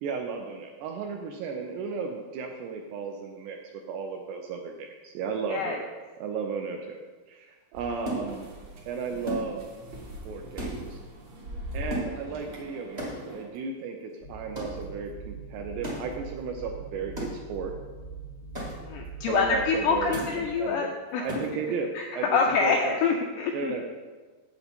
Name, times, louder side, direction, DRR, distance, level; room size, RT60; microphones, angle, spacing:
voice 1, 0.0-5.9 6.2-7.0 7.3-8.5 8.9-9.6 10.3-11.0 11.7-17.7 19.3-20.9 21.2-23.0 23.5-23.8, right 5 dB, 80° right, 2 dB, 2.5 m, -34 dB
voice 2, 5.5-5.8 18.8-21.3 21.9-23.7, left 5 dB, 85° left, 2 dB, 2.3 m, -26 dB
sound 1, 7.7-13.4, equal, 60° right, 1.8 m, -42 dB
sound 2, 8.0-8.7 9.2-9.9 10.1-10.3 10.5-11.3 11.9-12.6 13.0-13.6 14.5-14.9 15.8-16.2 17.2-17.6 18.5-19.0 20.1-20.5 21.2-21.7, equal, 45° right, 0.5 m, -36 dB
sound 3, 14.2-20.6, right 4 dB, 70° left, 0.5 m, -43 dB
8.2 x 8.2 x 4.3 m, 1.3 s
omnidirectional pair, 5.3 m